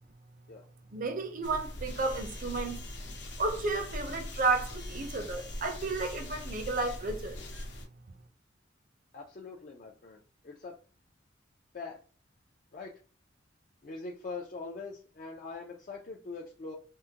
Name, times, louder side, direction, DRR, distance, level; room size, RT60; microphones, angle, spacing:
voice 1, 0.9-2.8 3.4-7.4, right 3 dB, 45° right, 0.6 m, -32 dB
sound 1, 1.4-7.9, left 1 dB, 70° left, 0.8 m, -41 dB
voice 2, 9.1-10.8 11.7-12.0 12.7-13.0 13.8-16.7, left 3 dB, 45° left, 0.4 m, -43 dB
3.6 x 2.1 x 2.8 m
head